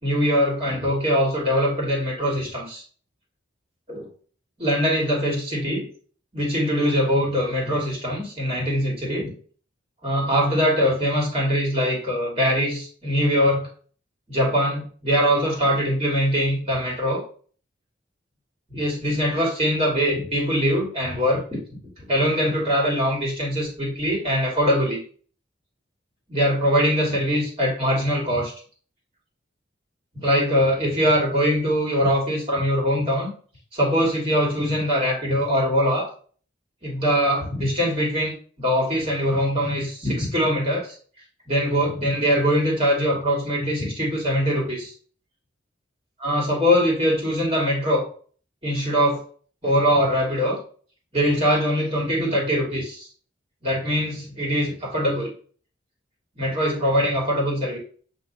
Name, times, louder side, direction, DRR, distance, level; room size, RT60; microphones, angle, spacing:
voice 1, 0.0-2.8 3.9-4.1 4.6-5.9 6.3-9.3 10.0-13.7 14.3-17.2 18.7-21.6 22.0-25.0 26.3-28.5 30.1-33.3 33.7-36.1 36.8-40.9 41.5-44.9 46.2-48.1 48.6-49.2 49.6-50.6 51.1-53.1 53.6-55.3 56.4-57.8, equal, 30° right, -2 dB, 1.6 m, -22 dB
7.6 x 2.5 x 2.6 m, 0.43 s
head